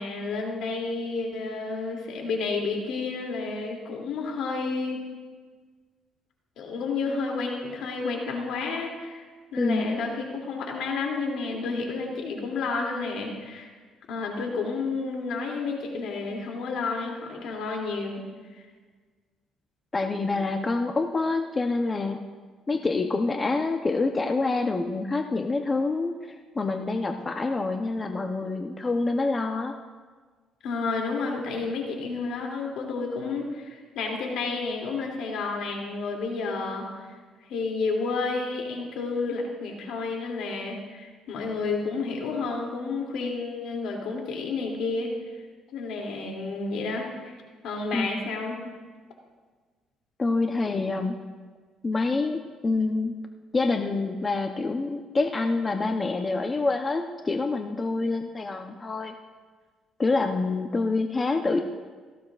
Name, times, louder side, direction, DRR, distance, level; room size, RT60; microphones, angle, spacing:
voice 1, 0.0-5.0 6.6-9.2 9.5-13.7 14.1-18.2 30.6-36.9 37.5-45.1 45.7-47.3 47.6-48.7, left 4 dB, 75° left, 0 dB, 2.7 m, -30 dB
voice 2, 9.6-10.0 19.9-22.2 22.7-29.7 47.9-48.1 50.2-51.2 51.8-53.1 53.5-59.1 60.0-61.6, left 3 dB, 25° left, 4 dB, 0.8 m, -26 dB
17.5 x 15.0 x 2.5 m, 1.4 s
cardioid pair, 100°, 0 cm